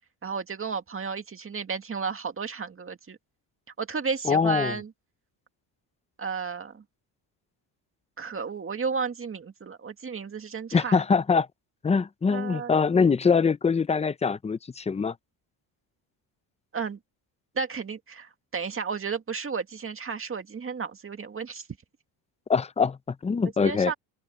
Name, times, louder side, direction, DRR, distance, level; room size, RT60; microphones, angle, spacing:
voice 1, 0.2-3.2 3.8-4.9 6.2-6.8 8.2-11.0 12.3-12.7 16.7-17.0 17.6-21.7 23.6-23.9, right 5 dB, 30° right, 2.1 m, -33 dB
voice 2, 4.2-4.7 10.7-11.5 11.8-15.1 22.5-23.9, left 5 dB, 15° left, 0.5 m, -23 dB
open air
cardioid pair, 115°, 46 cm